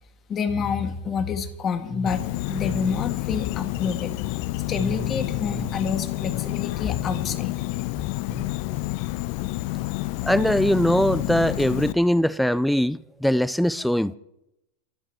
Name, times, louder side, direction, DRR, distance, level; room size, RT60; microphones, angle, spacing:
voice 1, 0.3-4.1 4.7-7.5 8.2-8.4, left 5 dB, 30° left, 1.8 m, -28 dB
Insect, 2.1-11.9, left 18 dB, 55° left, 0.6 m, -29 dB
voice 2, 10.2-14.2, equal, ahead, 0.5 m, -21 dB
28.0 x 9.3 x 4.7 m
hypercardioid pair, 95°, 0 cm